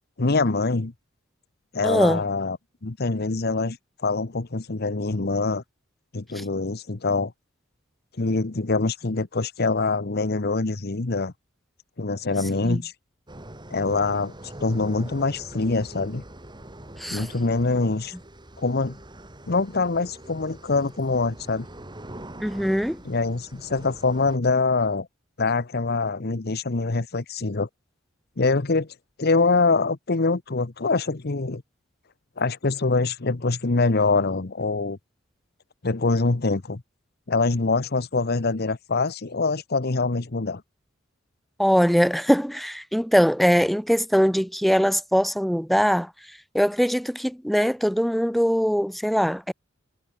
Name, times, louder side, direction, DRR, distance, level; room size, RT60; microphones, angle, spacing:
voice 1, 0.2-0.9 1.7-2.6 2.8-3.8 4.0-5.6 6.1-7.3 8.2-11.3 12.0-12.9 13.7-14.3 14.6-16.2 17.1-18.1 18.6-19.0 19.5-21.7 23.0-25.1 25.4-27.7 28.4-28.9 29.2-31.6 32.4-35.0 35.8-36.8 37.3-40.6, left 3 dB, 55° left, 1.0 m, -24 dB
voice 2, 1.8-2.2 6.4-6.5 12.6-12.8 17.0-17.3 22.4-23.0 41.6-46.1 46.5-49.5, equal, ahead, 1.1 m, -22 dB
sound 1, 13.3-24.4, right 1 dB, 25° right, 3.5 m, -43 dB
head